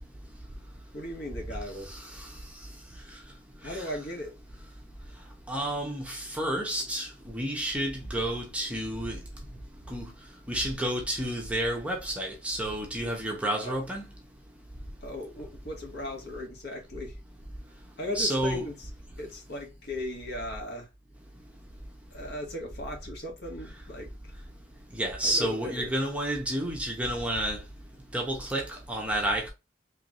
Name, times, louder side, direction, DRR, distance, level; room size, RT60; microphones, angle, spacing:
voice 1, 0.9-2.0 3.6-4.4 13.6-13.8 15.0-17.2 18.0-18.7 19.2-20.9 22.1-24.1 25.2-25.9, left 1 dB, 55° left, 1.6 m, -37 dB
voice 2, 5.5-7.1 7.3-9.2 9.9-10.1 10.5-14.0 18.1-18.7 24.9-27.6 28.1-29.5, right 1 dB, 5° right, 0.9 m, -30 dB
4.6 x 3.2 x 2.4 m
head